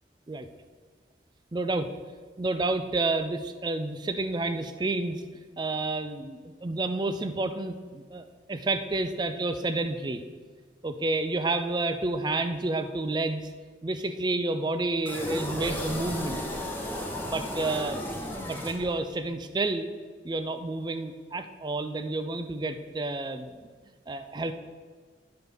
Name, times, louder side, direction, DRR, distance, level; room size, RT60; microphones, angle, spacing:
voice 1, 1.5-1.9 2.4-5.2 5.6-10.2 10.8-13.5 13.8-16.4 17.3-18.1 18.5-19.9 20.2-23.5 24.1-24.5, right 2 dB, 25° right, 9 dB, 0.4 m, -30 dB
sound 1, 15.1-19.3, left 1 dB, 10° left, 0.9 m, -34 dB
9.7 x 4.4 x 5.4 m, 1.5 s
head